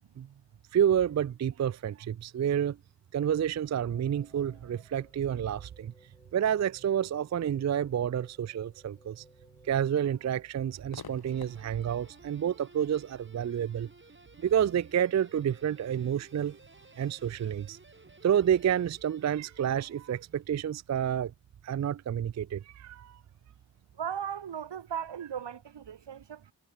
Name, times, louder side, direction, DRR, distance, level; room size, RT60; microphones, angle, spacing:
voice 1, 0.7-2.8 3.1-5.9 6.3-9.2 9.6-13.9 14.4-16.6 17.0-17.8 18.2-21.3 21.6-23.2, right 9 dB, 40° right, 0.4 m, -29 dB
sound 1, 3.6-11.6, left 1 dB, 10° left, 6.4 m, -62 dB
Crowd / Fireworks, 10.9-18.2, left 5 dB, 55° left, 2.1 m, -55 dB
Guitar, 11.3-20.6, right 2 dB, 25° right, 2.4 m, -56 dB
voice 2, 24.0-26.5, right 8 dB, 70° right, 1.1 m, -37 dB
cardioid pair, 45°, 43 cm